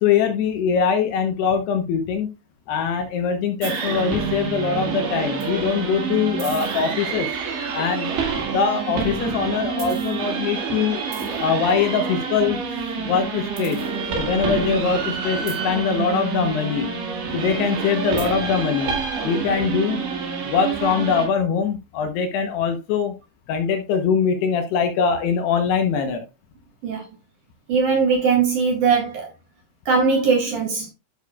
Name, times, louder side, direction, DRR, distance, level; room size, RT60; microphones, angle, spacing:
voice 1, 0.0-2.3 2.7-7.3 7.7-11.0 11.4-12.6 13.0-13.8 14.2-16.9 17.3-20.0 20.4-23.1 23.5-26.3, left 6 dB, 75° left, 2.7 m, -22 dB
sound 1, 3.6-21.3, right 6 dB, 70° right, 4.4 m, -27 dB
voice 2, 27.7-29.3 29.9-30.9, right 5 dB, 55° right, 2.7 m, -20 dB
11.5 x 6.4 x 2.3 m
omnidirectional pair, 5.3 m